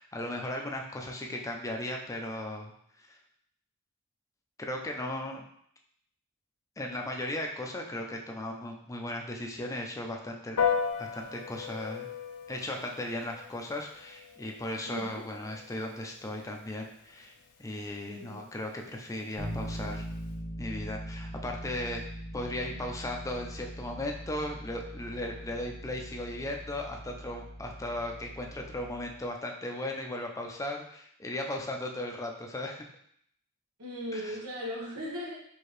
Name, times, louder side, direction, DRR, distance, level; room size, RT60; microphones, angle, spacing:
voice 1, 0.0-2.7 3.1-3.2 4.6-5.4 6.8-10.6 11.0-12.1 12.5-17.3 17.6-20.1 20.6-22.0 22.3-32.9 34.1-34.4, left 1 dB, 15° left, 1 dB, 0.5 m, -36 dB
Piano, 10.6-20.3, left 7 dB, 80° left, 0.5 m, -37 dB
voice 2, 14.8-15.2 18.0-18.5 33.8-35.4, equal, 85° right, -4 dB, 1.3 m, -38 dB
Bass guitar, 19.4-29.2, equal, 25° right, 1.5 m, -41 dB
4.5 x 2.8 x 3.2 m, 0.68 s
head